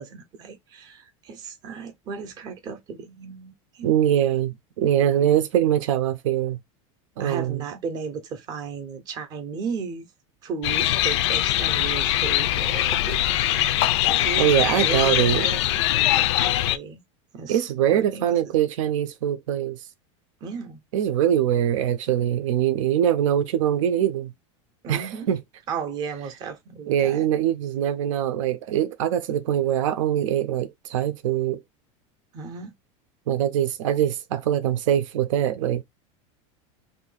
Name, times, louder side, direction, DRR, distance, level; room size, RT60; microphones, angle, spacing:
voice 1, 0.0-3.9 7.2-10.1 10.4-13.8 14.2-15.7 15.9-16.1 16.3-17.0 17.3-18.5 20.4-20.8 24.8-25.3 25.7-27.2 32.3-32.7, right 6 dB, 25° right, 0.6 m, -35 dB
voice 2, 3.8-6.6 7.2-7.6 14.4-15.5 17.5-19.8 20.9-24.3 24.9-25.4 26.9-31.6 33.3-35.8, right 10 dB, 85° right, 0.7 m, -23 dB
sound 1, 10.6-16.8, left 13 dB, 65° left, 0.4 m, -22 dB
2.7 x 2.6 x 3.9 m
supercardioid pair, 175°, 16 cm